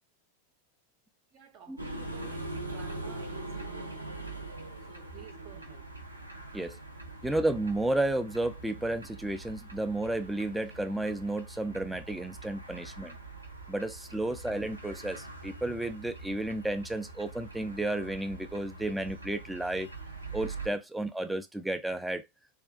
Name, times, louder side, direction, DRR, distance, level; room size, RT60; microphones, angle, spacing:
voice 1, 1.3-4.1 4.9-5.9, right 7 dB, 40° right, 0.6 m, -52 dB
sound 1, 1.8-20.7, right 2 dB, 85° right, 0.5 m, -43 dB
voice 2, 7.2-13.2 13.7-19.9 20.3-22.2, right 1 dB, 5° right, 0.3 m, -32 dB
2.4 x 2.3 x 2.3 m
figure-of-eight pair, 90°, 0 cm